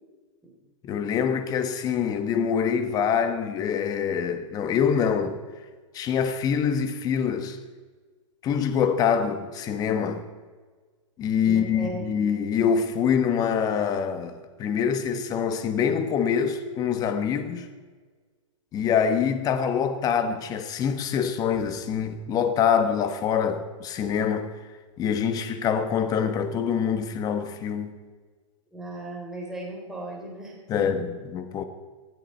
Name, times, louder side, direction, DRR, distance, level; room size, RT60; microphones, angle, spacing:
voice 1, 0.8-5.4 5.9-7.6 8.4-10.2 11.2-17.7 18.7-24.5 25.0-27.9 30.7-31.6, left 7 dB, 20° left, 1.2 m, -25 dB
voice 2, 11.4-12.1 28.7-30.9, right 1 dB, 5° right, 3.8 m, -36 dB
20.0 x 13.0 x 4.4 m
hypercardioid pair, 155°, 17 cm